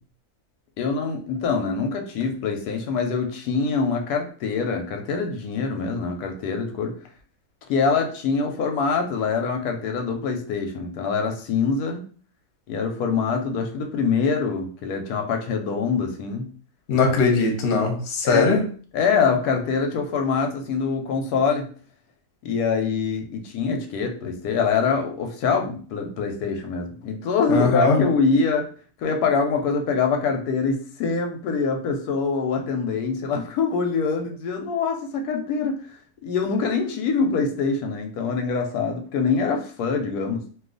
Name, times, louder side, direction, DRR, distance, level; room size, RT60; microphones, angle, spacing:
voice 1, 0.8-6.9 7.7-12.0 12.7-16.5 18.2-18.5 18.9-21.7 22.4-28.7 29.0-40.4, left 5 dB, 90° left, 4 dB, 1.1 m, -24 dB
voice 2, 16.9-18.6 27.5-28.0, left 4 dB, 55° left, 3 dB, 0.9 m, -20 dB
2.6 x 2.3 x 3.7 m, 0.43 s
omnidirectional pair, 1.6 m